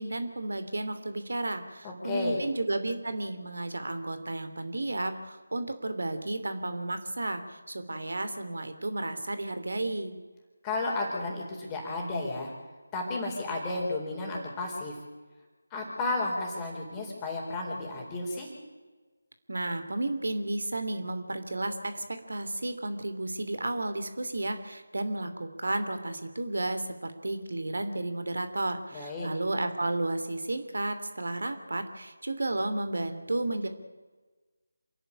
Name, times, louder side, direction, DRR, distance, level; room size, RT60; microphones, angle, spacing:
voice 1, 0.0-7.4 7.7-10.1 19.5-33.7, right 2 dB, 65° right, 9 dB, 2.8 m, -32 dB
voice 2, 1.8-2.4 10.6-12.5 12.9-14.9 15.7-18.5 28.9-29.3, left 2 dB, 15° left, -1 dB, 4.3 m, -32 dB
27.0 x 11.0 x 10.0 m, 1.3 s
figure-of-eight pair, 160°, 0 cm